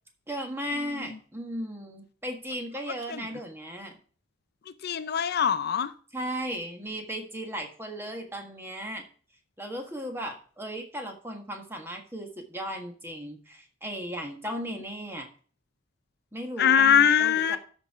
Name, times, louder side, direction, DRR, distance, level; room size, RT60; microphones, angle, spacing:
voice 1, 0.3-4.0 6.1-9.1 9.6-15.3 16.3-17.6, equal, 10° right, 1.6 m, -36 dB
voice 2, 4.8-5.9 16.6-17.6, left 8 dB, 55° left, 0.5 m, -22 dB
13.0 x 4.6 x 4.8 m
head